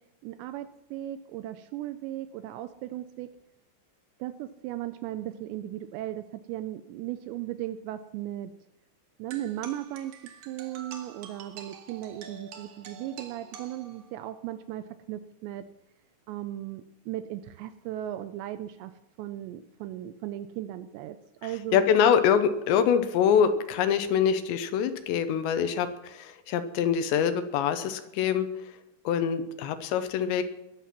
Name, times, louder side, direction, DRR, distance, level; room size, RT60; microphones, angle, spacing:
voice 1, 0.2-3.3 4.2-8.5 9.2-10.1 10.5-15.6 16.3-18.9 19.2-21.2 21.4-21.8, right 13 dB, 80° right, 11 dB, 2.6 m, -36 dB
sound 1, 9.3-14.3, right 6 dB, 65° right, 2.5 m, -47 dB
voice 2, 21.7-28.5 29.1-30.4, left 8 dB, 80° left, 10 dB, 2.9 m, -24 dB
20.5 x 7.7 x 5.9 m, 0.92 s
omnidirectional pair, 5.4 m